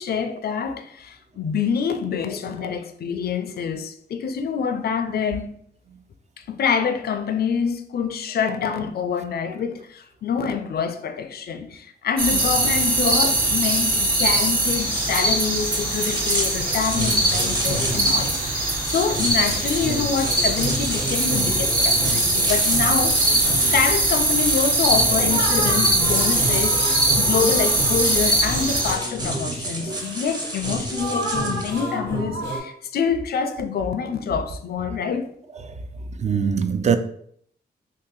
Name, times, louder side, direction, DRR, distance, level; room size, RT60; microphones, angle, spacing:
voice 1, 0.0-5.5 6.4-23.5 23.7-35.3, left 6 dB, 60° left, 0.4 m, -26 dB
sound 1, 12.2-28.9, right 2 dB, 55° right, 1.1 m, -21 dB
sound 2, 14.4-31.9, right 1 dB, 20° right, 0.8 m, -32 dB
sound 3, 16.6-32.6, right 1 dB, 85° right, 1.1 m, -31 dB
voice 2, 36.2-37.0, right 7 dB, 40° right, 0.4 m, -22 dB
2.7 x 2.6 x 3.8 m
cardioid pair, 65°, 18 cm